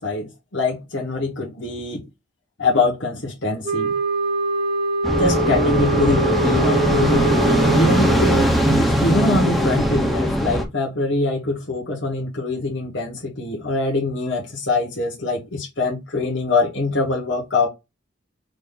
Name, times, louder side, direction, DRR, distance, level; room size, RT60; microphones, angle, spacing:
voice 1, 0.0-2.0 2.6-3.9 5.2-17.7, left 3 dB, 70° left, 1.3 m, -23 dB
sound 1, 3.6-8.5, right 2 dB, 30° right, 1.1 m, -24 dB
sound 2, 5.0-10.6, right 1 dB, ahead, 0.8 m, -19 dB
5.1 x 2.7 x 3.9 m
head